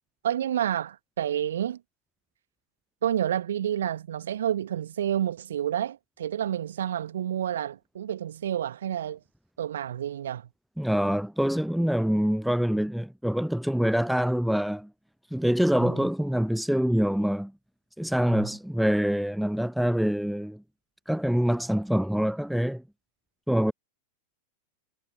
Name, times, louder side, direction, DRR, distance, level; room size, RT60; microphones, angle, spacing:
voice 1, 0.2-1.8 3.0-9.2 9.6-10.5 15.8-16.1 18.3-18.5, right 10 dB, 60° right, 1.9 m, -29 dB
voice 2, 10.8-14.9 15.3-17.5 18.0-20.6 21.1-22.8 23.5-23.7, equal, ahead, 0.3 m, -25 dB
figure-of-eight pair, 90°, 0 cm